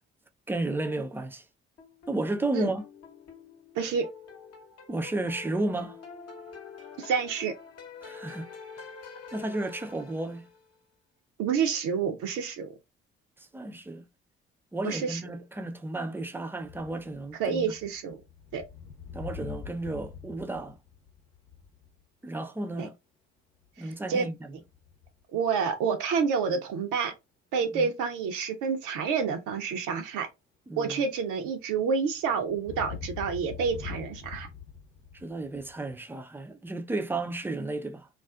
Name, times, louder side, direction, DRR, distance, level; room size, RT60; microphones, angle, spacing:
voice 1, 0.5-1.5 2.1-2.8 4.9-6.0 8.0-8.5 8.8-8.9 9.3-10.5 13.4-14.1 14.7-17.7 19.1-20.8 22.2-23.0 23.8-24.3 27.7-27.9 30.7-31.0 35.1-38.1, right 2 dB, 5° right, 0.3 m, -33 dB
sound 1, 1.8-10.7, left 5 dB, 45° left, 0.8 m, -47 dB
voice 2, 3.7-4.1 7.0-7.5 11.4-12.7 14.8-15.2 17.4-18.2 18.5-18.6 22.8-22.9 23.8-24.3 25.3-27.1 27.5-30.3 30.8-34.5, right 6 dB, 65° right, 0.6 m, -28 dB
sound 2, 16.6-22.0 24.7-25.2 32.3-36.0, left 7 dB, 75° left, 0.8 m, -43 dB
2.3 x 2.3 x 2.3 m
hypercardioid pair, 45°, 34 cm